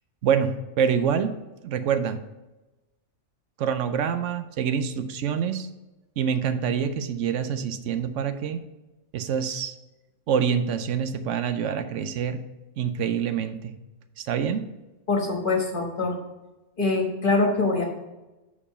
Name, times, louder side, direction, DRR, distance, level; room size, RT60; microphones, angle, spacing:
voice 1, 0.2-1.4 1.6-2.2 3.6-5.7 6.2-8.6 9.1-9.7 10.3-12.4 12.8-13.8 14.2-14.7, right 7 dB, 80° right, 10 dB, 0.9 m, -26 dB
voice 2, 15.1-16.2 16.8-17.8, left 3 dB, 45° left, 1 dB, 1.5 m, -24 dB
6.8 x 4.8 x 5.5 m, 1.1 s
omnidirectional pair, 1.3 m